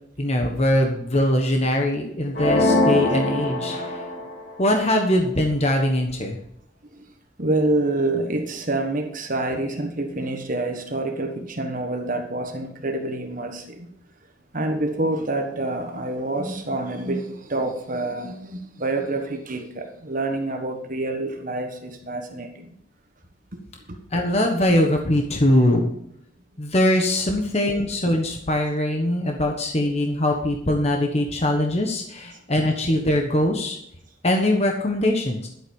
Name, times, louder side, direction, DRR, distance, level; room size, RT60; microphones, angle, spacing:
voice 1, 0.2-4.0 4.6-6.4 24.1-25.9 26.6-33.8 34.2-35.5, left 1 dB, 35° left, 2 dB, 1.3 m, -22 dB
sound 1, 2.4-4.4, left 1 dB, 50° left, 2.5 m, -22 dB
voice 2, 7.4-13.9 14.5-22.5 23.9-24.0, right 2 dB, 45° right, 4 dB, 1.3 m, -27 dB
11.5 x 8.0 x 5.4 m, 0.73 s
head